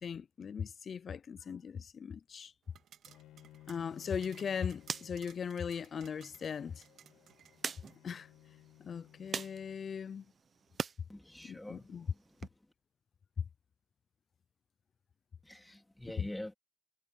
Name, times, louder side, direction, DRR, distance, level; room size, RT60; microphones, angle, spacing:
voice 1, 0.0-2.5 3.7-6.8 8.0-8.3 8.8-10.2 11.4-12.0, left 7 dB, 50° left, 0.4 m, -39 dB
sound 1, 2.7-8.0, right 9 dB, 70° right, 1.9 m, -61 dB
Bowed string instrument, 3.1-10.1, left 14 dB, 90° left, 4.6 m, -60 dB
sound 2, 3.8-11.0 11.4-12.5, right 6 dB, 45° right, 0.8 m, -46 dB
voice 2, 11.1-12.7 15.4-16.5, left 1 dB, 10° left, 2.5 m, -46 dB
cardioid pair, 90°, 0 cm